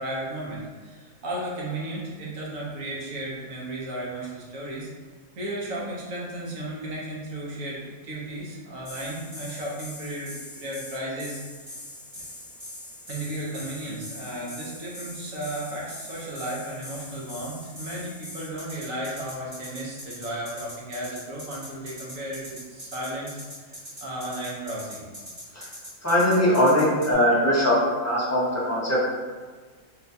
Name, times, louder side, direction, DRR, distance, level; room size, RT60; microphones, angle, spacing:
voice 1, 0.0-4.9 5.3-11.7 12.1-12.2 13.1-23.3 23.6-25.0, right 1 dB, 70° right, -5 dB, 1.2 m, -34 dB
sound 1, 8.8-27.1, left 1 dB, 15° right, 1.0 m, -42 dB
voice 2, 26.0-29.1, left 1 dB, 20° left, -8 dB, 0.4 m, -21 dB
4.1 x 2.3 x 2.7 m, 1.4 s
omnidirectional pair, 1.5 m